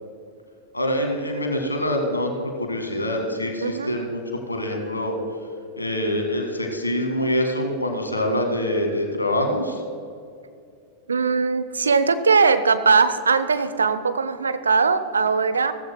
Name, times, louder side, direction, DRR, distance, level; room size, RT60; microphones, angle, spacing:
voice 1, 0.7-5.2 5.8-9.8, left 1 dB, 80° left, 4 dB, 1.8 m, -25 dB
voice 2, 3.6-3.9 11.1-15.7, right 5 dB, 75° right, 11 dB, 0.7 m, -20 dB
17.0 x 14.5 x 2.2 m, 2.4 s
figure-of-eight pair, 90°, 0 cm